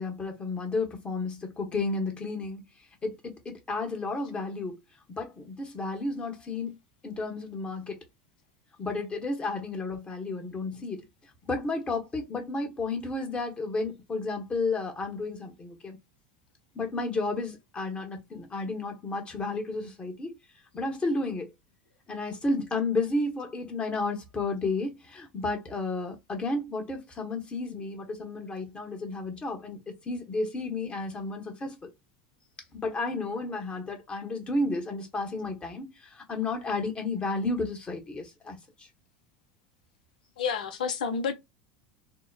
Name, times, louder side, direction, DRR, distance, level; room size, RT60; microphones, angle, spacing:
voice 1, 0.0-2.6 3.0-4.7 5.2-6.7 7.0-8.0 8.8-11.1 11.4-16.0 16.7-20.3 20.7-21.5 22.1-31.9 32.7-35.9 36.3-38.9, left 3 dB, 25° left, 1.0 m, -32 dB
voice 2, 40.4-41.3, left 6 dB, 80° left, 0.5 m, -29 dB
2.8 x 2.0 x 2.2 m
hypercardioid pair, 85°, 4 cm